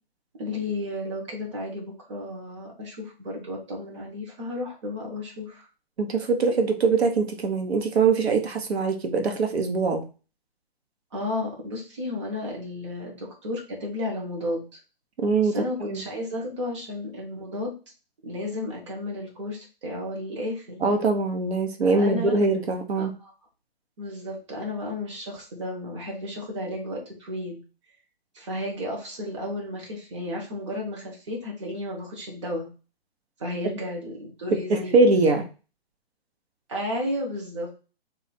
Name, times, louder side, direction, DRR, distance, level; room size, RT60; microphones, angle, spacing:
voice 1, 0.4-5.7 11.1-14.6 15.4-17.7 18.2-20.8 21.9-22.4 23.0-23.3 24.0-27.6 28.3-32.7 33.4-34.9 36.7-37.8, left 1 dB, 30° right, -2 dB, 1.1 m, -33 dB
voice 2, 6.0-10.0 15.2-16.0 20.8-23.1 34.5-35.4, right 4 dB, 85° right, 5 dB, 1.0 m, -22 dB
4.1 x 2.4 x 4.1 m, 0.33 s
hypercardioid pair, 180°, 31 cm